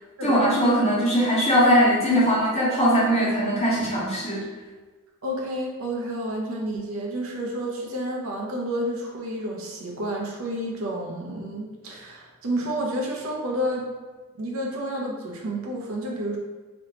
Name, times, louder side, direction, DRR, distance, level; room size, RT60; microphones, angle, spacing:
voice 1, 0.2-4.5, equal, 30° left, -8 dB, 1.1 m, -20 dB
voice 2, 5.2-13.9 14.4-16.4, right 1 dB, 65° right, -2 dB, 0.7 m, -30 dB
3.3 x 2.9 x 2.9 m, 1.3 s
head